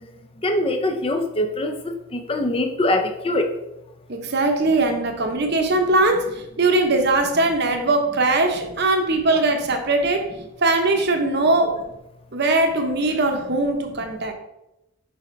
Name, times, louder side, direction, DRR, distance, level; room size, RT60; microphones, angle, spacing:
voice 1, 0.4-3.5, left 1 dB, 25° left, 6 dB, 0.5 m, -23 dB
voice 2, 4.1-10.3 10.6-11.8 12.3-14.3, right 2 dB, 50° right, 4 dB, 0.8 m, -20 dB
6.3 x 5.1 x 3.2 m, 0.90 s
head